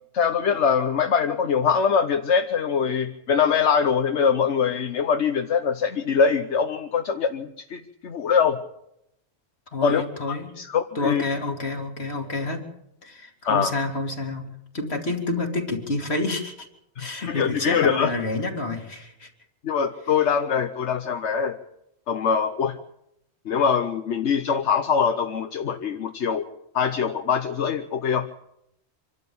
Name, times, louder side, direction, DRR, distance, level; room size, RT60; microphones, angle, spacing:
voice 1, 0.1-8.6 9.8-10.0 10.3-11.2 13.4-13.8 17.0-18.1 19.6-21.6 22.1-22.8 23.5-26.4 26.7-28.3, left 6 dB, 85° left, 6 dB, 1.3 m, -23 dB
voice 2, 9.7-10.5 10.9-12.6 13.0-14.5 14.7-16.7 17.0-19.3, left 2 dB, 65° left, 3 dB, 2.9 m, -28 dB
25.5 x 12.5 x 8.6 m, 0.81 s
omnidirectional pair, 1.1 m